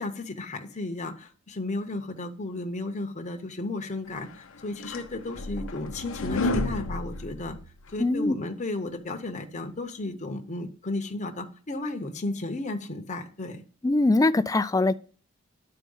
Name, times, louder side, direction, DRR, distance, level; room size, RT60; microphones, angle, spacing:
voice 1, 0.0-7.6 7.9-13.6, left 2 dB, 35° left, 0.9 m, -34 dB
sound 1, 4.4-8.0, left 2 dB, 65° left, 0.8 m, -31 dB
voice 2, 8.0-8.3 13.8-15.0, left 2 dB, 15° left, 0.3 m, -22 dB
10.5 x 4.3 x 5.4 m
head